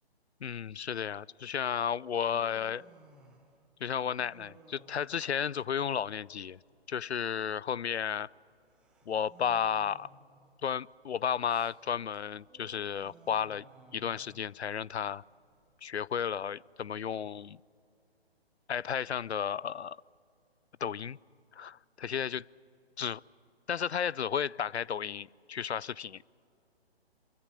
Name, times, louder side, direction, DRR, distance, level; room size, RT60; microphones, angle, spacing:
voice 1, 0.4-2.8 3.8-6.6 6.9-8.3 9.1-10.1 10.6-13.6 13.9-15.2 15.8-17.6 18.7-20.0 20.8-21.2 21.5-22.4 23.0-23.2 23.7-26.2, left 8 dB, 90° left, 25 dB, 0.5 m, -33 dB
Human voice, 1.4-16.6, right 3 dB, 5° right, 0.5 m, -60 dB
24.5 x 15.0 x 9.8 m, 2.5 s
figure-of-eight pair, 140°, 32 cm